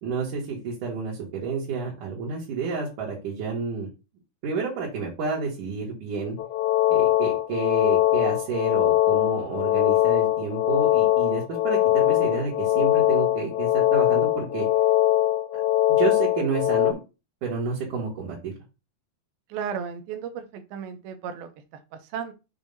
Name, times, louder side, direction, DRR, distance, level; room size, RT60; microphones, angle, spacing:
voice 1, 0.0-3.9 4.4-6.4 6.9-14.7 16.0-17.0 17.4-18.5, right 5 dB, 60° right, -4 dB, 2.8 m, -30 dB
sound 1, 6.4-16.9, left 13 dB, 80° left, 2.5 m, -22 dB
voice 2, 19.5-22.3, right 7 dB, 85° right, 7 dB, 2.6 m, -35 dB
7.1 x 2.7 x 5.2 m, 0.29 s
omnidirectional pair, 4.4 m